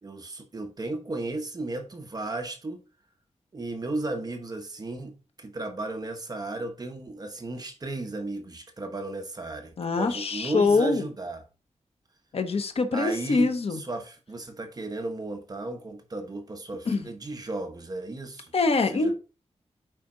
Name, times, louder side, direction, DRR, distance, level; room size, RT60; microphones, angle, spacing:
voice 1, 0.0-2.8 3.5-11.4 12.9-18.5 18.9-19.2, right 2 dB, 35° right, 1.0 m, -34 dB
voice 2, 9.8-11.1 12.3-13.8 16.9-17.1 18.5-19.2, left 3 dB, 60° left, 0.9 m, -24 dB
9.2 x 4.2 x 3.8 m
wide cardioid pair, 170°, 12 cm